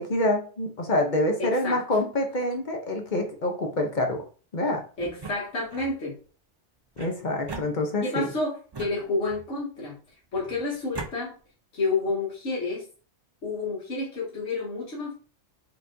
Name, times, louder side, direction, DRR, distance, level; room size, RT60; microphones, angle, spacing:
voice 1, 0.0-4.2 4.5-4.8 7.0-8.3, left 1 dB, 45° left, 3 dB, 0.8 m, -26 dB
voice 2, 1.4-1.8 5.0-6.1 8.0-9.9 10.3-11.4 11.7-12.9 13.4-15.1, left 3 dB, 75° left, -6 dB, 1.7 m, -29 dB
sound 1, 5.0-5.9 6.9-8.2 8.7-9.6 10.3-11.1, right 4 dB, 30° right, 0.5 m, -41 dB
4.3 x 3.9 x 2.6 m, 0.38 s
omnidirectional pair, 1.2 m